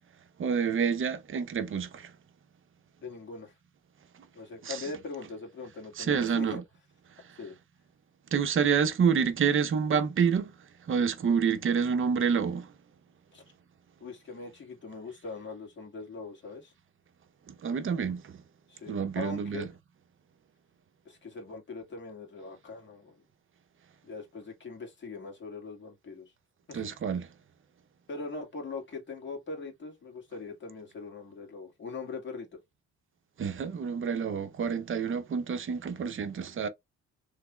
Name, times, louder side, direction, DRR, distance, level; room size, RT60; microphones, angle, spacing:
voice 1, 0.4-2.1 4.6-4.8 6.0-6.6 7.3-7.4 8.3-10.5 10.9-12.7 17.5-18.4 18.9-19.7 26.7-27.3 33.4-36.7, right 6 dB, 45° right, 0.7 m, -28 dB
voice 2, 3.0-3.5 4.3-6.6 7.4-7.6 13.3-13.4 14.0-16.7 18.7-19.7 21.1-23.2 24.0-26.3 26.7-26.8 28.1-32.5, left 4 dB, 40° left, 1.8 m, -41 dB
3.3 x 3.2 x 2.2 m
cardioid pair, 90°, 30 cm